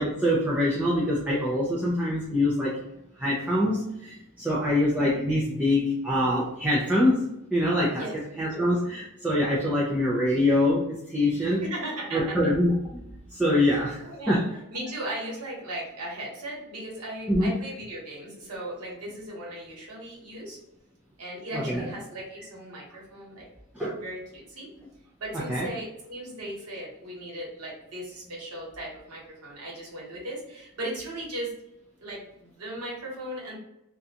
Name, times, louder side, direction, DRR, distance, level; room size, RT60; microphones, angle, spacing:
voice 1, 0.0-2.8 3.2-7.2 7.5-8.0 8.4-11.6 12.1-13.0 13.3-14.0 14.3-14.4 17.3-17.5 21.5-21.8 23.8-24.0 25.5-25.7, left 1 dB, 5° right, -6 dB, 0.4 m, -24 dB
voice 2, 11.6-12.5 13.7-14.4 14.7-20.6 21.2-23.5 24.0-24.7 25.2-31.5 32.0-33.6, right 1 dB, 85° right, -4 dB, 1.1 m, -37 dB
2.5 x 2.2 x 2.7 m, 0.86 s
head